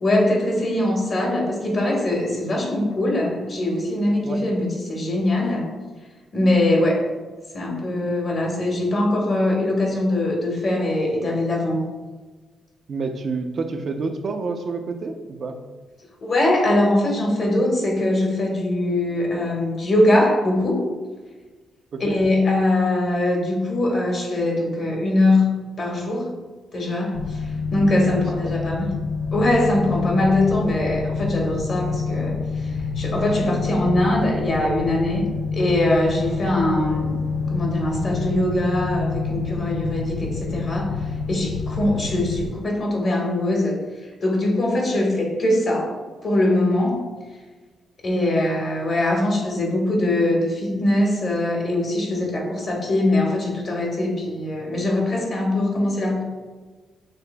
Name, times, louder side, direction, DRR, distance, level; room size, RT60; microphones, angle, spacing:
voice 1, 0.0-5.7 6.3-7.1 7.5-11.9 16.2-20.9 22.0-25.5 25.8-26.3 26.7-28.9 29.3-37.2 37.5-43.8 44.2-45.9 46.2-47.0 48.0-56.2, left 1 dB, 50° left, 0 dB, 1.4 m, -22 dB
voice 2, 12.9-15.6 21.9-22.2 28.2-28.6, right 4 dB, 55° right, 5 dB, 0.5 m, -29 dB
sound 1, 27.1-42.5, left 4 dB, 75° left, 0.3 m, -27 dB
6.7 x 3.4 x 2.2 m, 1.3 s
cardioid pair, 70°, 0 cm